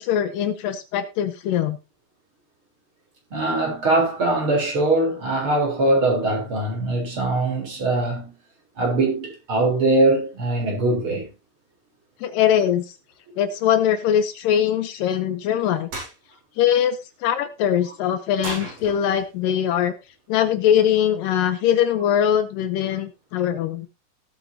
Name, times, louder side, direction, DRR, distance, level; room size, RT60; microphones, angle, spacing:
voice 1, 0.0-1.8 12.2-13.0 13.4-15.9 16.6-19.9 20.3-23.9, left 10 dB, 75° left, 2.3 m, -22 dB
voice 2, 3.3-8.3 8.8-11.3, right 2 dB, 35° right, 4.4 m, -21 dB
sound 1, 15.9-16.1 18.4-19.4, right 1 dB, 70° right, 7.9 m, -34 dB
18.0 x 8.4 x 2.8 m
omnidirectional pair, 4.2 m